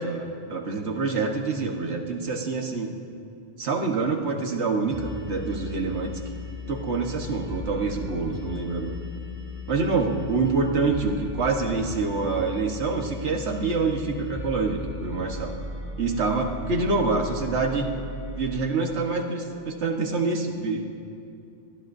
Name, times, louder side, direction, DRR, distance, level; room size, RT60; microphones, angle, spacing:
voice 1, 0.0-2.9 3.6-6.1 6.7-8.9 9.7-15.5 16.0-17.9 18.3-20.8, right 4 dB, 85° right, 2 dB, 1.7 m, -26 dB
sound 1, 4.9-18.6, left 3 dB, 10° right, 1.6 m, -37 dB
24.5 x 20.0 x 2.7 m, 2.6 s
omnidirectional pair, 1.1 m